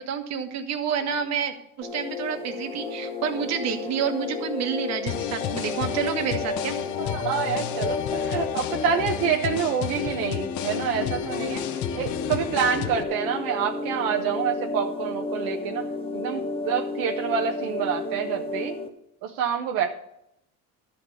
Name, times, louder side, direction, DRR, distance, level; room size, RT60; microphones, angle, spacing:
voice 1, 0.0-6.7, right 7 dB, 50° right, 5 dB, 1.4 m, -29 dB
sound 1, 1.8-18.9, left 3 dB, 15° left, 0.8 m, -32 dB
sound 2, 5.1-13.0, left 11 dB, 60° left, 0.8 m, -32 dB
voice 2, 7.0-11.6 12.0-15.9 16.1-18.7 19.2-20.0, right 7 dB, 70° right, 2 dB, 1.1 m, -27 dB
13.0 x 4.4 x 8.2 m, 0.79 s
cardioid pair, 145°, 35 cm